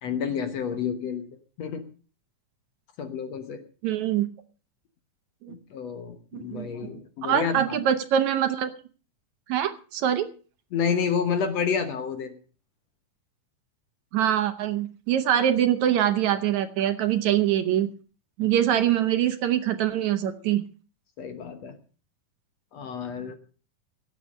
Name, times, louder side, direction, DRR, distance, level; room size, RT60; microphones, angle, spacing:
voice 1, 0.0-1.3 1.6-1.8 3.0-3.6 5.5-7.8 10.7-12.3 18.4-18.5 21.2-21.7 22.7-23.3, left 6 dB, 60° left, 8 dB, 2.1 m, -29 dB
voice 2, 3.8-4.3 5.4-5.5 6.3-6.7 7.2-8.7 9.5-10.3 14.1-17.9 18.4-20.6, right 10 dB, 70° right, 9 dB, 2.1 m, -24 dB
17.5 x 8.4 x 6.4 m, 0.39 s
omnidirectional pair, 3.8 m